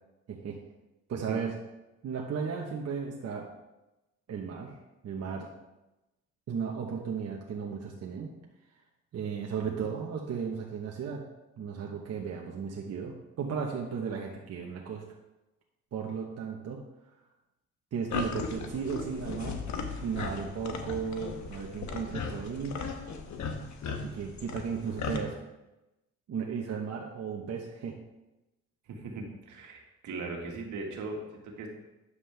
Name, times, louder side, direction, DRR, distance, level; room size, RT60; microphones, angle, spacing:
voice 1, 0.3-0.6 1.1-1.6 2.0-3.5 4.3-4.7 5.0-5.5 6.5-8.3 9.1-11.2 11.6-15.0 15.9-16.8 17.9-19.6 20.0-22.8 24.0-25.4 26.3-28.0, right 6 dB, 55° right, 0 dB, 1.1 m, -35 dB
sound 1, 18.1-25.2, left 5 dB, 70° left, 1.1 m, -37 dB
voice 2, 28.9-31.7, right 3 dB, 75° right, 1 dB, 1.8 m, -39 dB
9.7 x 7.3 x 3.4 m, 0.99 s
cardioid pair, 90°, 30 cm